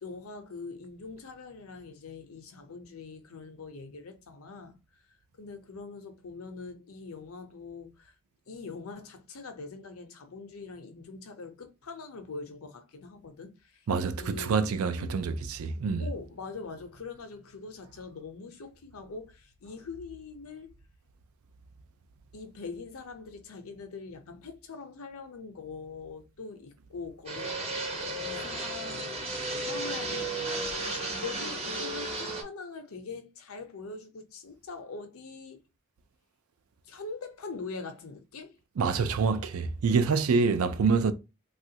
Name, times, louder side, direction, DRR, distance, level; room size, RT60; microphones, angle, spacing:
voice 1, 0.0-8.1 8.5-13.9 14.2-15.1 16.0-20.7 22.3-35.6 36.8-38.6, left 4 dB, 80° left, 0.6 m, -43 dB
voice 2, 13.9-16.1 38.8-41.1, right 5 dB, 90° right, 0.4 m, -26 dB
Fixed-wing aircraft airplane, 27.3-32.4, right 2 dB, 30° right, 0.7 m, -34 dB
3.1 x 2.4 x 2.7 m
head